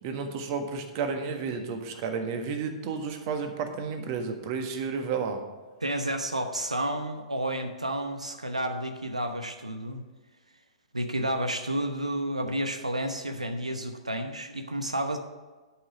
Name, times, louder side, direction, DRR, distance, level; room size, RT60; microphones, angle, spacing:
voice 1, 0.0-5.4, right 5 dB, 40° right, 6 dB, 1.5 m, -32 dB
voice 2, 5.8-10.0 10.9-15.2, right 1 dB, 85° right, 6 dB, 0.9 m, -31 dB
11.0 x 5.8 x 7.0 m, 1.3 s
figure-of-eight pair, 110°, 3 cm